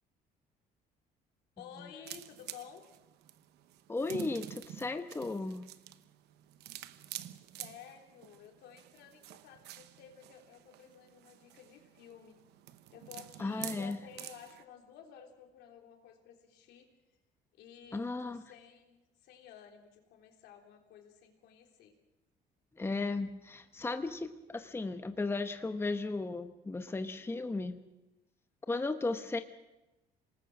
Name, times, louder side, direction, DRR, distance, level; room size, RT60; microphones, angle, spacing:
voice 1, 1.6-2.8 7.2-7.3 7.6-12.4 12.9-17.2 17.5-21.9, left 8 dB, 80° left, 2 dB, 3.5 m, -53 dB
sound 1, 2.0-14.6, right 13 dB, 80° right, 1.0 m, -49 dB
voice 2, 3.9-5.7 13.4-14.0 17.9-18.4 22.8-27.8 28.7-29.4, left 3 dB, 15° left, 8 dB, 1.0 m, -35 dB
27.0 x 19.5 x 6.1 m, 0.99 s
cardioid pair, 110°, 17 cm